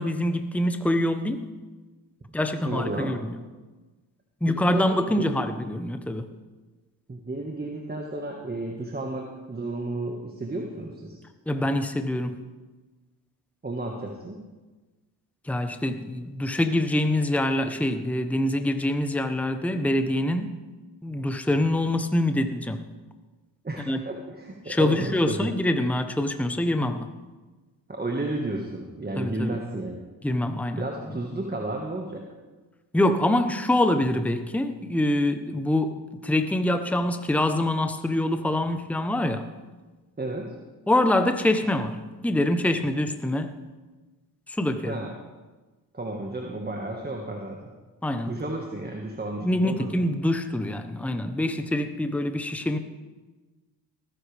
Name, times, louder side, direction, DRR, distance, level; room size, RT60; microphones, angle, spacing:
voice 1, 0.0-1.5 2.3-3.3 4.4-6.3 11.5-12.4 15.5-20.5 21.0-22.9 23.9-24.0 24.7-27.1 29.2-29.6 30.2-30.8 32.9-39.5 40.9-43.5 44.5-45.0 48.0-48.3 49.4-52.8, left 1 dB, 5° left, 8 dB, 1.0 m, -25 dB
voice 2, 2.6-3.1 4.5-5.5 7.1-11.2 13.6-14.4 23.6-25.5 27.9-30.0 30.8-32.3 40.2-40.5 44.8-45.1 45.9-47.7 48.2-49.9, right 2 dB, 20° right, 1 dB, 1.8 m, -32 dB
19.5 x 10.0 x 3.5 m, 1.2 s
supercardioid pair, 65°, 43 cm